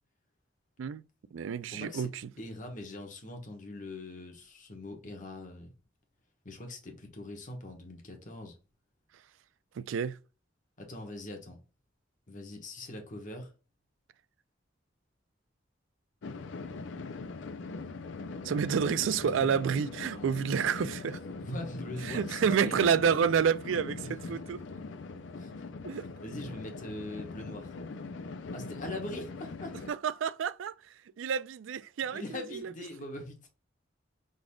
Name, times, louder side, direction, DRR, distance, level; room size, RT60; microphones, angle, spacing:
voice 1, 0.8-2.1 9.8-10.2 18.4-21.2 22.0-24.6 25.8-26.1 29.9-30.7 31.2-32.7, right 7 dB, 90° right, 0.4 m, -29 dB
voice 2, 1.7-2.1 2.4-5.7 6.4-8.6 10.8-11.6 12.3-13.5 19.0-19.1 19.4-19.5 20.1-20.3 20.8-20.9 21.4-22.9 24.3-24.4 25.4-25.5 26.2-27.7 28.5-29.8 32.1-33.5, left 1 dB, 45° left, 1.3 m, -42 dB
sound 1, 16.2-29.9, left 3 dB, 70° left, 0.5 m, -41 dB
4.9 x 3.9 x 2.3 m
head